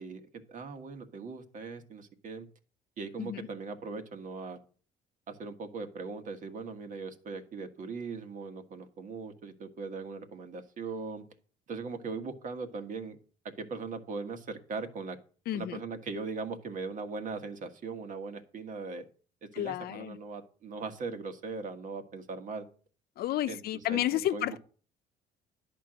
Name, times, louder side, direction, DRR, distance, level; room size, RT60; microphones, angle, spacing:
voice 1, 0.0-2.5 3.0-4.6 5.3-11.2 11.7-13.2 13.4-15.2 15.5-19.0 19.4-22.7 23.5-24.6, right 4 dB, 50° right, 1.6 m, -39 dB
voice 2, 15.5-15.8 19.5-20.2 23.2-24.6, left 13 dB, 70° left, 0.7 m, -31 dB
11.0 x 4.6 x 7.7 m
cardioid pair, 110°, 17 cm